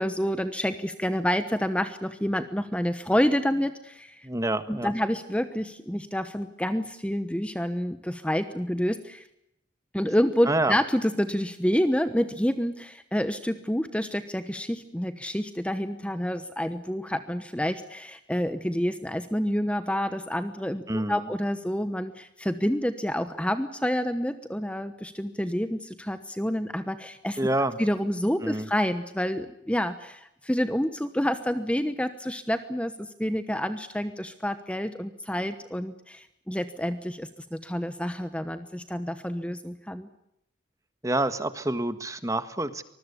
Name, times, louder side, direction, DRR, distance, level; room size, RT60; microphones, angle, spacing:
voice 1, 0.0-4.3 4.7-9.3 9.9-27.4 27.8-40.1, equal, 5° left, 10 dB, 1.0 m, -28 dB
voice 2, 4.2-4.9 10.4-10.8 20.9-21.2 27.4-27.8 28.4-28.7 41.0-42.8, right 1 dB, 15° right, 11 dB, 1.5 m, -27 dB
24.5 x 21.0 x 8.3 m, 0.80 s
head